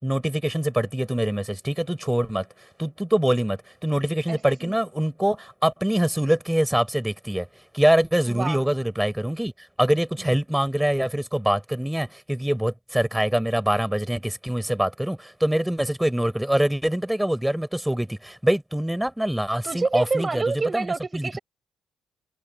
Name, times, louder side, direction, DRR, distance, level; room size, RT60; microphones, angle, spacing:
voice 1, 0.0-2.5 2.8-7.5 7.7-9.5 9.8-20.4 20.7-20.9 21.1-21.4, right 1 dB, 5° right, 5.7 m, -24 dB
voice 2, 4.3-4.7 8.3-8.6 10.2-10.3 19.6-21.4, right 4 dB, 30° right, 6.1 m, -28 dB
figure-of-eight pair, 40°, 0 cm